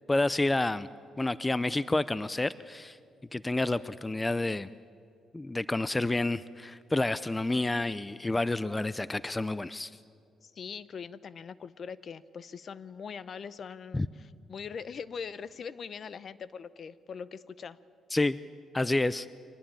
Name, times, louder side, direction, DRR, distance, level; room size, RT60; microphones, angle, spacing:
voice 1, 0.1-0.9 1.2-3.0 3.3-4.7 5.3-9.9 13.9-14.1 18.1-18.4 18.7-19.3, left 2 dB, 15° left, 17 dB, 0.5 m, -29 dB
voice 2, 10.4-17.8, left 6 dB, 50° left, 17 dB, 0.8 m, -42 dB
25.0 x 18.5 x 9.0 m, 2.4 s
cardioid pair, 90°, 0 cm